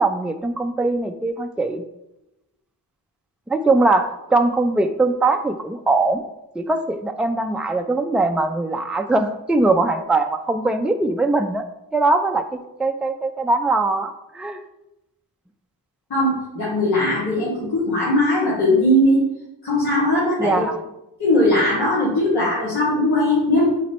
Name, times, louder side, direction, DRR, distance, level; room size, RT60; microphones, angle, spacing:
voice 1, 0.0-1.8 3.5-6.2 6.5-11.6 11.9-14.6 20.4-20.8, right 2 dB, 5° right, 6 dB, 0.5 m, -21 dB
voice 2, 16.1-19.2 19.6-20.6 21.2-23.7, left 1 dB, 85° left, -9 dB, 2.2 m, -19 dB
7.3 x 4.2 x 3.0 m, 0.89 s
cardioid pair, 45°, 40 cm